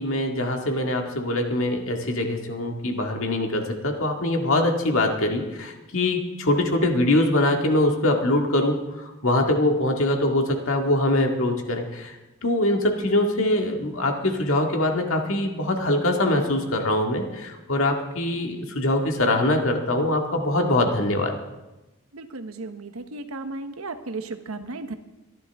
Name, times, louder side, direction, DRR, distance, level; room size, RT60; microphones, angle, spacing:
voice 1, 0.0-21.4, left 1 dB, 70° left, 2 dB, 2.0 m, -23 dB
voice 2, 22.1-24.9, right 3 dB, 85° right, 9 dB, 1.1 m, -35 dB
24.5 x 11.5 x 3.6 m, 1.0 s
head